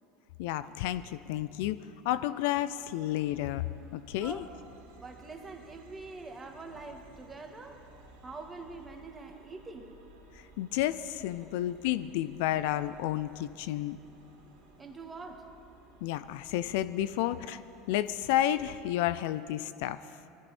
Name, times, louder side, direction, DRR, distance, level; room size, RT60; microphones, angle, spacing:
voice 1, 0.4-3.6 3.9-4.4 10.6-14.0 16.0-17.6 17.9-20.0, left 13 dB, 70° left, 14 dB, 0.4 m, -31 dB
sound 1, 2.1-19.5, right 1 dB, 70° right, 3.0 m, -57 dB
voice 2, 4.9-7.8 8.2-9.9 11.4-11.5 14.8-15.5, right 3 dB, 20° right, 3 dB, 2.0 m, -44 dB
20.5 x 13.5 x 4.3 m, 2.9 s
hypercardioid pair, 80°, 0 cm